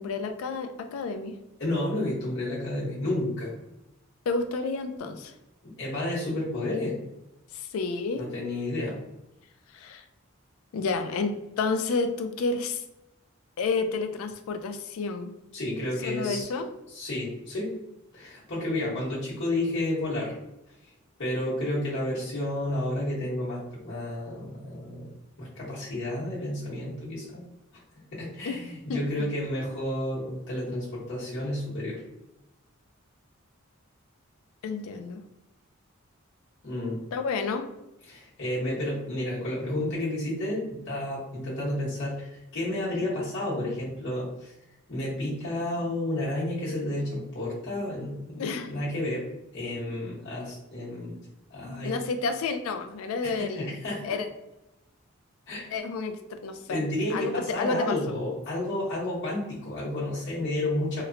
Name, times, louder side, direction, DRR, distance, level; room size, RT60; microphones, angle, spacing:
voice 1, 0.0-1.3 4.3-5.3 7.5-8.2 9.7-10.0 10.7-12.8 13.6-15.3 16.0-16.7 28.5-28.6 28.9-29.3 34.6-35.2 37.1-37.7 48.4-48.7 51.8-53.8 54.0-54.3 55.7-56.8 57.1-58.1, left 4 dB, 80° left, 7 dB, 0.3 m, -30 dB
voice 2, 1.6-3.5 5.6-7.0 8.2-9.0 15.5-16.5 16.9-17.7 18.1-20.4 21.2-25.1 25.4-27.4 28.1-32.0 36.6-37.0 38.1-44.5 44.9-49.3 49.5-51.1 51.5-51.9 53.2-54.1 55.5-55.7 56.7-61.0, left 1 dB, 55° left, -8 dB, 1.0 m, -31 dB
2.9 x 2.1 x 2.5 m, 0.91 s
head